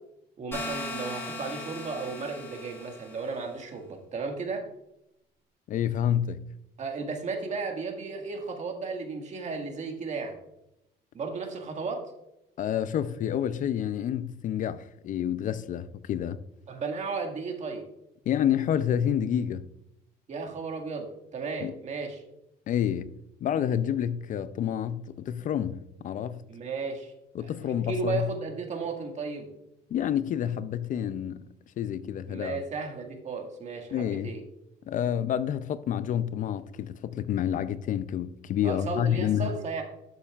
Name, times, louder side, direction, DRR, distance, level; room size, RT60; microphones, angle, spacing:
voice 1, 0.4-4.7 6.8-10.4 11.1-12.1 16.7-17.8 20.3-22.2 26.5-27.1 27.4-29.5 32.3-34.4 38.6-39.8, right 4 dB, 45° right, 1.8 m, -34 dB
sound 1, 0.5-3.4, left 2 dB, 15° left, 3.1 m, -38 dB
voice 2, 5.7-6.4 12.6-16.4 18.3-19.6 21.6-21.7 22.7-23.1 23.4-26.4 27.3-28.3 29.9-31.5 31.8-32.6 33.9-34.3 34.9-39.5, left 9 dB, 50° left, 0.4 m, -28 dB
12.5 x 6.8 x 2.4 m
cardioid pair, 110°, 17 cm